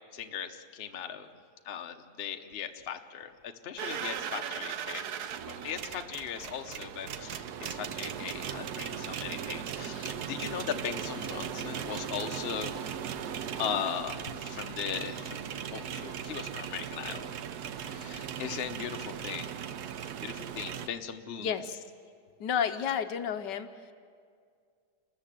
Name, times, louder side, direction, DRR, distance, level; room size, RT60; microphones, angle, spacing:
voice 1, 0.1-1.3 1.6-12.7 13.6-17.3 17.8-19.5 20.2-21.5, left 8 dB, 50° left, 6 dB, 0.7 m, -38 dB
sound 1, 3.8-20.9, right 8 dB, 65° right, 1.1 m, -38 dB
voice 2, 21.4-21.8 22.4-23.7, left 8 dB, 65° left, 9 dB, 1.2 m, -31 dB
29.5 x 13.5 x 7.6 m, 2.2 s
omnidirectional pair, 2.2 m